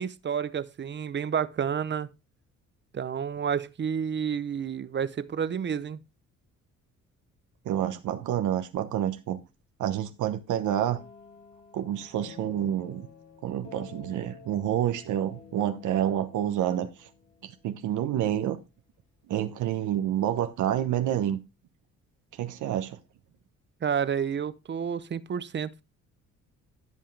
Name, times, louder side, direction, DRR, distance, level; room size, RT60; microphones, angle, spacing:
voice 1, 0.0-2.1 2.9-6.0 23.8-25.8, right 7 dB, 35° right, 0.8 m, -30 dB
voice 2, 7.6-9.4 9.8-11.0 11.7-13.1 13.4-17.1 17.4-18.6 19.3-21.4 22.4-23.0, right 11 dB, 80° right, 1.0 m, -28 dB
sound 1, 10.6-18.4, left 5 dB, 85° left, 3.4 m, -50 dB
16.0 x 5.6 x 3.3 m
cardioid pair, 90°, 30 cm